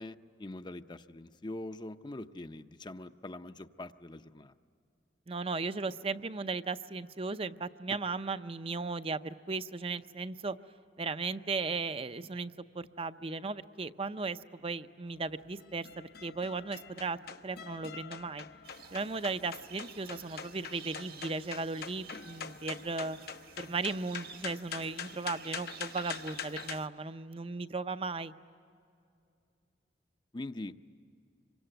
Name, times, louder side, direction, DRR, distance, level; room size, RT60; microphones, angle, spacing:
voice 1, 0.0-4.5 30.3-30.8, left 2 dB, 25° left, 9 dB, 0.6 m, -43 dB
voice 2, 5.3-10.6 11.0-18.5 18.9-23.2 23.6-28.3, right 4 dB, 35° right, 12 dB, 0.6 m, -36 dB
sound 1, 15.1-26.8, left 7 dB, 60° left, 0.7 m, -45 dB
sound 2, 18.6-26.9, right 8 dB, 60° right, 1.6 m, -52 dB
26.5 x 24.0 x 9.0 m, 2.5 s
head